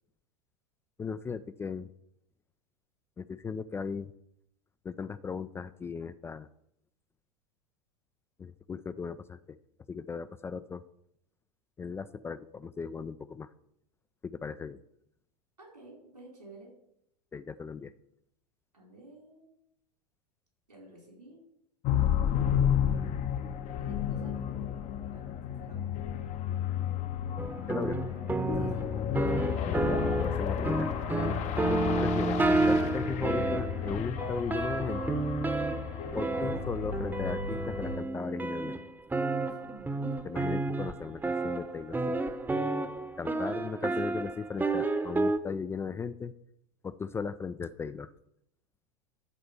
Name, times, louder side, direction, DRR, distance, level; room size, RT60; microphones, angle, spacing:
voice 1, 1.0-1.9 3.2-4.1 4.8-6.5 8.4-9.6 9.9-10.8 11.8-13.5 14.2-14.8 17.3-17.9 27.7-28.0 29.7-30.9 31.7-35.2 36.1-38.8 40.2-42.2 43.2-46.3 46.8-48.1, left 5 dB, 15° left, 14 dB, 0.3 m, -37 dB
voice 2, 15.6-16.7 18.7-19.5 20.7-21.4 23.8-24.5 25.1-25.8 28.5-28.9 39.4-40.1 43.3-44.0, right 2 dB, 90° right, 0 dB, 4.4 m, -52 dB
sound 1, 21.8-38.0, left 9 dB, 35° left, 0.8 m, -32 dB
sound 2, 27.4-45.4, right 2 dB, 10° right, 0.8 m, -31 dB
12.5 x 4.3 x 6.7 m, 0.77 s
figure-of-eight pair, 90°, 20 cm